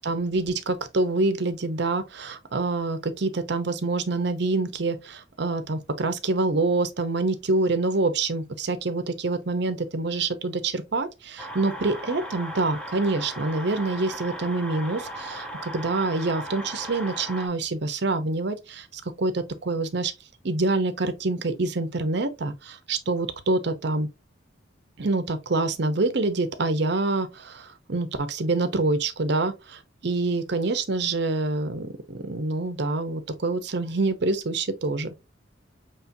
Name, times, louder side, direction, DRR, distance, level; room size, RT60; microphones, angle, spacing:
voice 1, 0.0-20.1 20.4-24.1 25.0-35.1, right 3 dB, 60° right, 0.8 m, -26 dB
sound 1, 11.4-17.5, right 1 dB, 5° left, 0.8 m, -37 dB
5.9 x 3.1 x 2.6 m
head